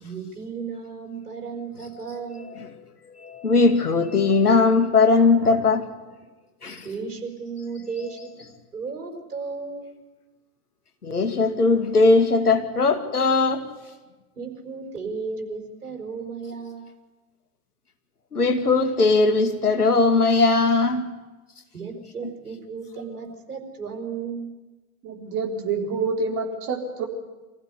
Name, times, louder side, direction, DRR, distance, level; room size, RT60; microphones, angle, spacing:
voice 1, 0.0-2.5 6.8-9.9 14.3-16.9 21.7-24.5, right 5 dB, 75° right, 5.0 m, -34 dB
voice 2, 3.2-5.9 6.6-6.9 11.0-13.7 18.3-21.1, left 3 dB, 80° left, 2.6 m, -19 dB
voice 3, 25.0-27.0, right 4 dB, 40° right, 4.2 m, -27 dB
25.0 x 16.0 x 9.8 m
figure-of-eight pair, 90°, 45 cm